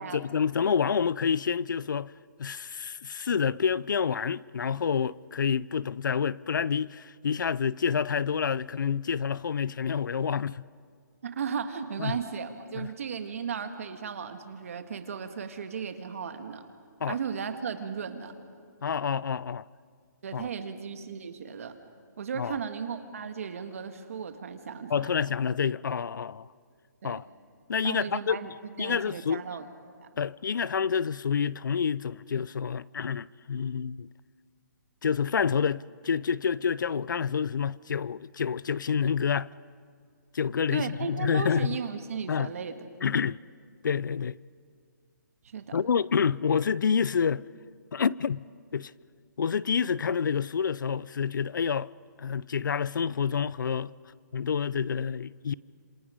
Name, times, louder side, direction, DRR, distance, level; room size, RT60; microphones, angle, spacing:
voice 1, 0.0-2.1 2.4-10.6 12.0-12.2 12.8-12.9 17.0-17.2 18.8-19.6 20.3-20.5 22.4-22.6 24.9-26.5 27.0-27.3 27.7-28.4 28.8-29.4 30.2-34.1 35.0-39.5 40.3-41.8 42.3-42.5 43.0-43.4 43.8-44.4 45.7-47.4 47.9-48.4 48.7-48.9 49.4-51.9 52.2-53.9 54.3-55.5, left 6 dB, 75° left, 0.5 m, -28 dB
voice 2, 11.2-16.6 17.1-18.3 20.2-21.7 22.2-25.1 27.0-27.2 27.8-28.5 28.8-29.7 40.7-42.8 45.4-45.8, right 6 dB, 45° right, 1.6 m, -35 dB
27.0 x 26.5 x 5.0 m
hypercardioid pair, 175°, 10 cm